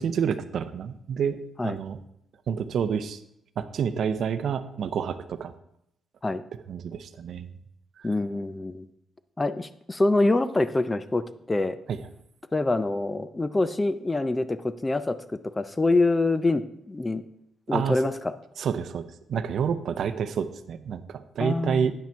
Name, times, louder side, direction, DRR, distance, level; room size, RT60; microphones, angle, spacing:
voice 1, 0.0-1.4 1.6-2.0 2.5-3.2 3.6-5.5 6.7-7.5 8.0-8.1 11.9-12.0 17.7-18.0 18.6-21.9, right 7 dB, 65° right, 12 dB, 0.6 m, -28 dB
voice 2, 8.0-8.9 9.4-11.8 12.5-15.2 15.6-17.2 17.7-18.3 21.4-21.9, left 2 dB, 15° left, 13 dB, 0.4 m, -25 dB
9.0 x 5.9 x 4.4 m, 0.78 s
cardioid pair, 115°, 0 cm